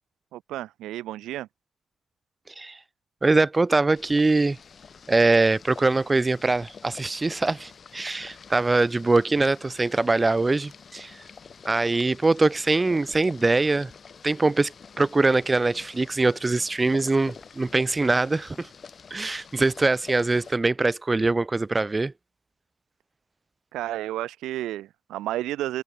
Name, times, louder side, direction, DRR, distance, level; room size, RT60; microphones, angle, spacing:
voice 1, 0.3-1.5 23.7-25.8, right 14 dB, 85° right, 0.8 m, -31 dB
voice 2, 3.2-4.6 5.1-11.2 11.7-13.9 14.2-18.7 19.1-22.1, right 3 dB, 25° right, 0.6 m, -23 dB
Boiling, 4.0-20.6, left 6 dB, 55° left, 3.7 m, -47 dB
supercardioid pair, 55°, 0 cm